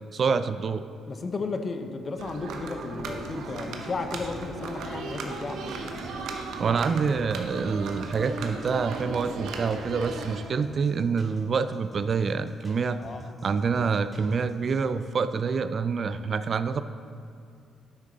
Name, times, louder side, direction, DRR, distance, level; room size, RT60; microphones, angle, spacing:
voice 1, 0.1-0.8 6.6-13.0 13.4-16.8, right 5 dB, 50° right, 12 dB, 0.3 m, -27 dB
voice 2, 1.1-5.8 13.0-13.3, left 3 dB, 40° left, 7 dB, 0.6 m, -34 dB
sound 1, 2.2-10.4, right 3 dB, 80° right, 0.8 m, -36 dB
sound 2, 3.1-14.8, left 1 dB, 10° left, 2.0 m, -48 dB
Rain, 3.3-9.1, right 1 dB, 20° right, 1.2 m, -53 dB
9.1 x 6.4 x 3.9 m, 2.5 s
cardioid pair, 90°, 0 cm